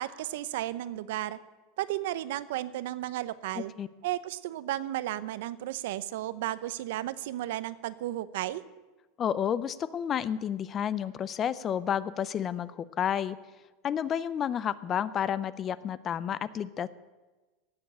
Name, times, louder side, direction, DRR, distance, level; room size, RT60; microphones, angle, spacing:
voice 1, 0.0-1.4 1.8-3.7 4.0-8.6, right 14 dB, 70° right, 16 dB, 0.7 m, -34 dB
voice 2, 3.6-3.9 9.2-13.4 13.8-16.9, left 9 dB, 25° left, 18 dB, 0.5 m, -31 dB
17.0 x 7.1 x 8.7 m, 1.2 s
supercardioid pair, 165°, 0 cm